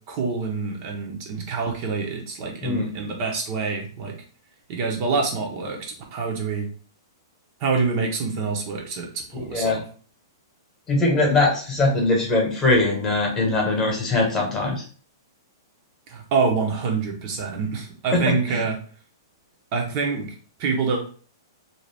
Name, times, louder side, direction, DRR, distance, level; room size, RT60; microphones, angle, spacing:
voice 1, 0.1-4.1 4.7-6.7 7.6-9.8 16.1-18.8 19.7-20.3 20.6-21.0, right 4 dB, 40° right, 1 dB, 0.8 m, -26 dB
voice 2, 10.9-14.8 18.1-18.2 18.5-18.6, left 2 dB, 20° left, -1 dB, 1.1 m, -21 dB
2.6 x 2.4 x 3.3 m, 0.42 s
hypercardioid pair, 135°, 2 cm